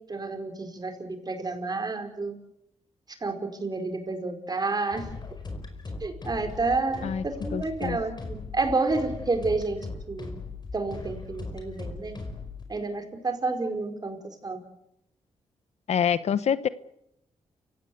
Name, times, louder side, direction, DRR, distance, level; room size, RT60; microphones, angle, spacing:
voice 1, 0.1-2.3 3.2-5.1 6.0-10.4 10.7-12.2 12.7-14.2 14.4-14.6, right 3 dB, 35° right, 7 dB, 4.9 m, -30 dB
sound 1, 4.9-12.6, left 3 dB, 35° left, 5.1 m, -38 dB
voice 2, 7.5-8.0 15.9-16.7, left 8 dB, 65° left, 15 dB, 1.0 m, -26 dB
29.5 x 16.5 x 8.1 m, 0.79 s
cardioid pair, 75°, 12 cm